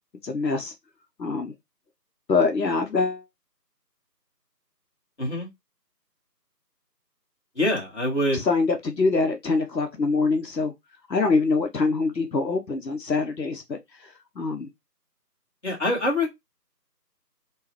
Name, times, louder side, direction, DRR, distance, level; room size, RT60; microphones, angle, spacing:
voice 1, 0.2-0.7 1.2-1.5 2.3-3.2 8.3-10.7 11.1-13.8 14.4-14.7, left 4 dB, 85° left, 1.0 m, -24 dB
voice 2, 5.2-5.5 7.6-8.4 15.6-16.3, left 1 dB, 40° left, 1.9 m, -24 dB
3.7 x 3.1 x 3.0 m
figure-of-eight pair, 170°, 50 cm